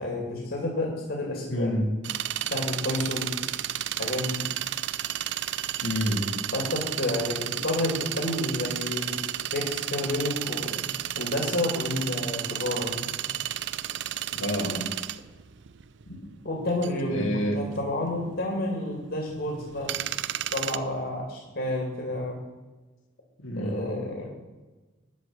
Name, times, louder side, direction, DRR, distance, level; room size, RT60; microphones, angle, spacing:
voice 1, 0.0-1.7 2.5-3.3 4.0-4.4 6.5-9.2 9.5-10.9 11.2-13.1 14.3-14.4 16.4-17.3 17.5-19.9 20.5-22.4 23.6-24.3, left 1 dB, 60° left, -1 dB, 2.6 m, -30 dB
voice 2, 1.5-1.9 5.8-6.4 14.4-14.9 17.1-17.6 23.4-23.9, equal, 85° left, 3 dB, 2.0 m, -28 dB
sound 1, 2.0-20.8, right 12 dB, 60° right, 0.4 m, -32 dB
13.0 x 5.1 x 8.9 m, 1.2 s
head